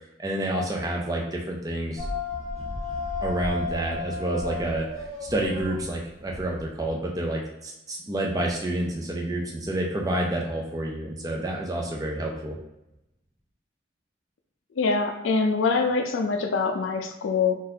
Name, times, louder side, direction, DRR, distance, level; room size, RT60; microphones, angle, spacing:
voice 1, 0.2-2.1 3.2-4.9 5.2-12.6, right 1 dB, 20° right, 0 dB, 0.5 m, -29 dB
sound 1, 2.0-6.9, left 3 dB, 70° right, 1.4 m, -33 dB
voice 2, 14.8-17.5, left 4 dB, 90° left, 4 dB, 0.4 m, -24 dB
3.8 x 2.5 x 2.8 m, 0.91 s
head